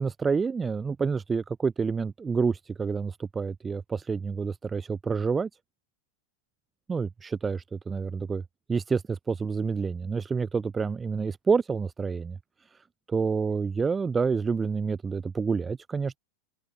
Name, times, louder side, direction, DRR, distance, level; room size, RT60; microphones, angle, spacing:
voice 1, 0.0-5.5 6.9-8.4 8.7-12.4 13.1-16.2, right 5 dB, 15° right, 1.4 m, -28 dB
open air
figure-of-eight pair, 90°, 0 cm